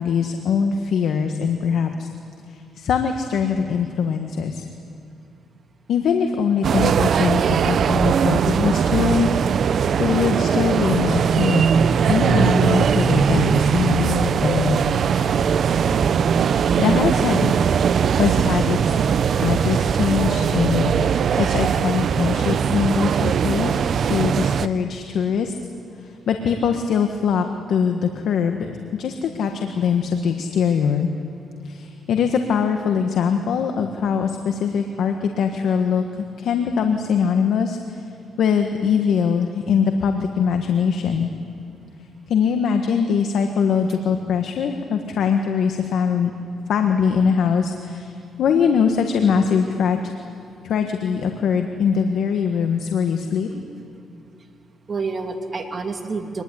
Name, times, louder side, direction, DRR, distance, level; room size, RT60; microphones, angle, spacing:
voice 1, 0.0-2.1 2.8-4.6 5.9-9.3 10.0-11.6 12.1-14.8 15.1-15.3 16.8-17.5 18.2-18.9 19.4-23.8 24.1-25.5 26.3-31.1 31.7-36.0 36.4-37.8 38.4-41.3 42.3-46.3 46.7-48.1 48.4-50.0 50.6-53.5, left 6 dB, 75° left, 5 dB, 1.6 m, -22 dB
sound 1, 6.6-24.7, right 7 dB, 60° right, 0.8 m, -20 dB
voice 2, 53.5-53.9 54.9-56.4, right 4 dB, 35° right, 3 dB, 3.0 m, -29 dB
25.5 x 20.5 x 10.0 m, 2.6 s
cardioid pair, 95°, 0 cm